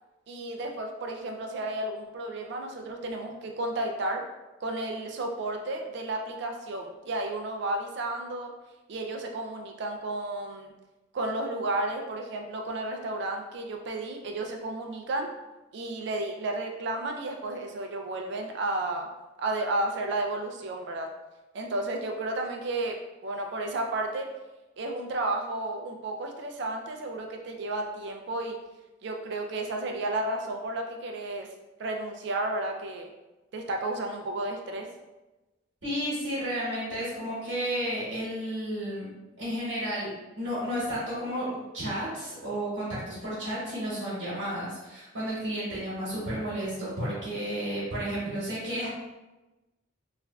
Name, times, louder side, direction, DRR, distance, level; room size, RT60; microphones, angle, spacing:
voice 1, 0.3-4.2 4.6-8.5 8.9-10.7 11.1-15.3 15.7-19.1 19.4-21.1 21.5-24.3 24.8-28.6 29.0-31.5 31.8-33.1 33.5-34.9, right 2 dB, 55° right, 3 dB, 0.4 m, -32 dB
voice 2, 35.8-39.1 39.4-40.1 40.4-48.9, equal, 75° right, -9 dB, 1.2 m, -32 dB
3.2 x 2.4 x 2.3 m, 1.1 s
head